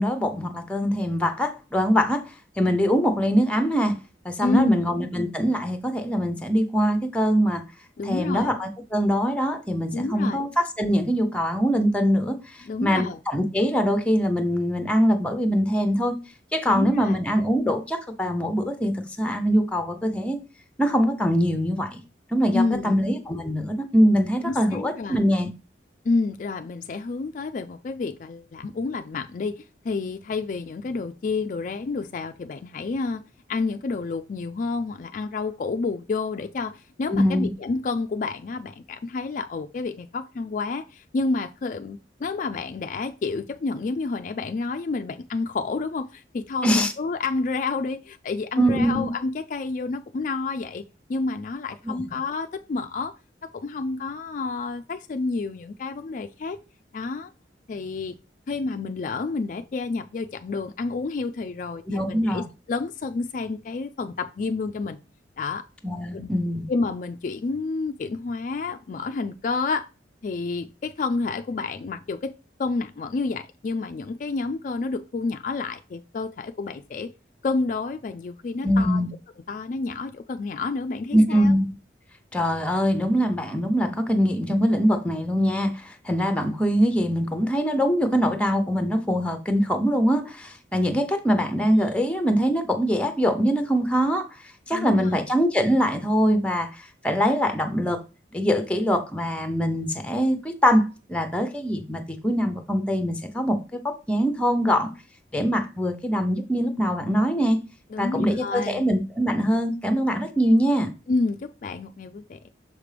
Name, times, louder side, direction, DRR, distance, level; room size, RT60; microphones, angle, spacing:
voice 1, 0.0-3.9 4.2-7.6 8.0-12.4 12.8-16.1 16.5-20.4 20.8-22.0 22.3-25.5 37.1-37.5 46.6-46.9 48.6-49.1 61.9-62.4 65.8-66.7 78.6-79.1 81.1-81.8 82.3-94.3 94.7-98.0 98.3-104.9 105.3-107.6 108.0-110.9, equal, 5° left, 0.7 m, -23 dB
voice 2, 4.4-4.8 8.0-8.5 9.9-10.4 12.6-13.2 16.7-17.2 22.5-23.0 24.4-25.3 26.0-33.2 33.5-50.8 51.1-53.1 53.5-56.6 56.9-57.3 57.7-58.2 58.5-65.0 65.4-65.6 66.1-66.3 66.7-69.9 70.2-72.3 72.6-77.1 77.4-79.0 79.5-81.6 94.7-95.2 107.9-108.9 111.1-112.5, left 3 dB, 45° left, 0.3 m, -29 dB
6.5 x 5.1 x 3.3 m
head